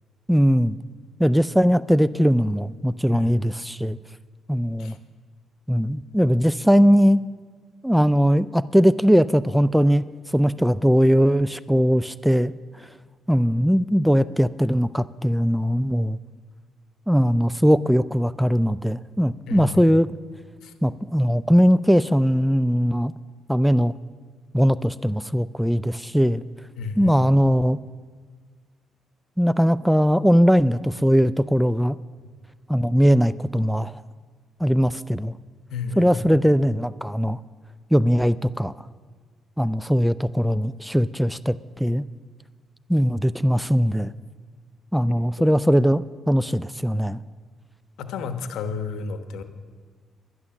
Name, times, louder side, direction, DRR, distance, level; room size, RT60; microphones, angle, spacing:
voice 1, 0.3-0.8 1.2-4.0 4.5-5.0 5.7-7.2 7.8-10.0 10.3-12.5 13.3-16.2 17.1-20.1 20.8-23.1 23.5-23.9 24.5-26.4 27.0-27.8 29.4-32.0 32.7-33.9 34.6-35.3 36.0-37.4 37.9-38.7 39.6-42.0 42.9-44.1 44.9-47.2, equal, ahead, 17 dB, 0.3 m, -20 dB
voice 2, 19.5-19.9 20.6-20.7 26.8-27.3 35.7-36.4 45.4-45.5 48.0-49.4, left 5 dB, 80° left, 9 dB, 1.1 m, -32 dB
11.0 x 11.0 x 7.2 m, 1.5 s
cardioid pair, 90°, 0 cm